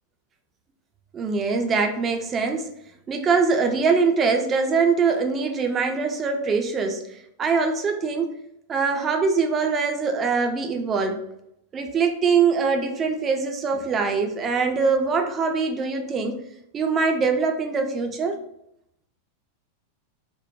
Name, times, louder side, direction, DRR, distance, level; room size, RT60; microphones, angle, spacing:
voice 1, 1.1-2.7 3.1-8.3 8.7-11.3 11.7-16.4 16.7-18.4, right 5 dB, 25° right, 4 dB, 0.4 m, -23 dB
3.0 x 2.1 x 2.5 m, 0.76 s
figure-of-eight pair, 90°, 0 cm